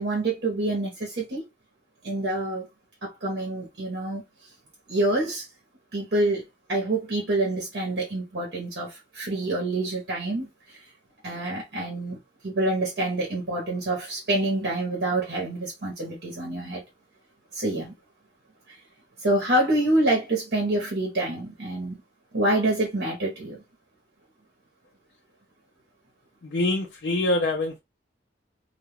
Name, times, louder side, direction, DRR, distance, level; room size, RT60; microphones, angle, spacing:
voice 1, 0.0-1.4 2.0-2.7 3.0-4.5 4.9-5.5 5.9-6.4 6.7-10.9 11.2-16.8 17.5-17.9 18.7-18.8 19.2-22.0 22.3-23.6, right 1 dB, 65° right, 0.9 m, -27 dB
voice 2, 26.5-27.8, left 2 dB, 70° left, 0.5 m, -24 dB
2.3 x 2.2 x 3.0 m
head